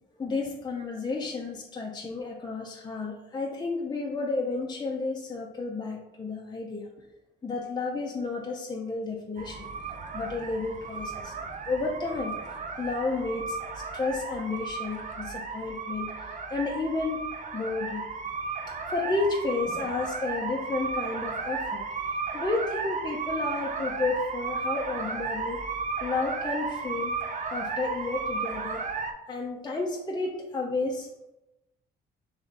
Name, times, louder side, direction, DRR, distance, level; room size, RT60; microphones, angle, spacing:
voice 1, 0.2-6.9 7.4-9.7 10.1-11.3 11.7-12.4 12.8-16.1 16.5-18.0 18.9-21.9 22.3-25.7 26.0-27.1 27.5-28.9 29.3-31.1, left 3 dB, 20° left, -1 dB, 0.6 m, -31 dB
sound 1, 9.4-29.1, right 4 dB, 40° right, 0.6 m, -34 dB
3.2 x 3.2 x 3.9 m, 0.93 s
cardioid pair, 90°, 20 cm